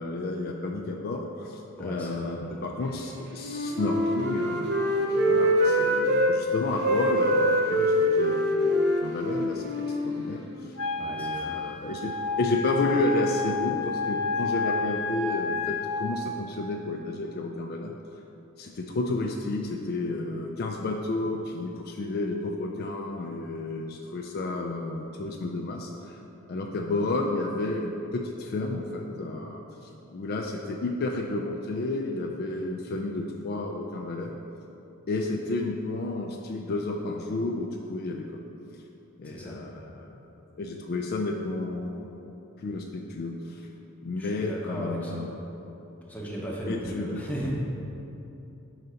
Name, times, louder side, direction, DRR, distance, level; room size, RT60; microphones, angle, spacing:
voice 1, 0.0-10.7 11.1-18.0 18.6-26.2 26.5-34.4 35.1-38.3 38.7-38.8 39.2-40.1 40.6-42.2 42.6-43.7 44.0-45.3 46.6-47.3, left 2 dB, 50° left, 1 dB, 0.4 m, -31 dB
voice 2, 1.8-2.7 11.0-11.6 39.2-39.6 44.2-45.3 46.0-47.5, right 1 dB, 5° left, -4 dB, 0.8 m, -36 dB
Wind instrument woodwind instrument, 3.3-6.3 6.8-10.6, equal, 55° right, 0.7 m, -24 dB
Wind instrument woodwind instrument 2, 10.8-16.1, left 4 dB, 85° left, 0.7 m, -30 dB
4.9 x 3.9 x 5.6 m, 2.9 s
head